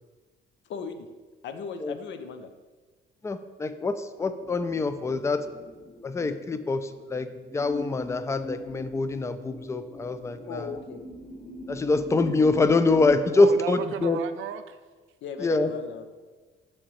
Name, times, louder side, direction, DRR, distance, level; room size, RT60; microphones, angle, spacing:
voice 1, 0.7-1.1 1.4-2.5 10.5-11.0 15.2-16.1, left 5 dB, 70° left, 0.6 m, -37 dB
voice 2, 3.2-5.4 6.0-7.3 7.5-10.7 11.7-14.2 15.4-15.7, left 3 dB, 15° left, 0.4 m, -25 dB
sound 1, 4.4-13.3, equal, 45° left, 1.4 m, -42 dB
voice 3, 13.4-14.8, right 9 dB, 80° right, 0.5 m, -34 dB
6.4 x 6.3 x 3.1 m
cardioid pair, 90°, 20 cm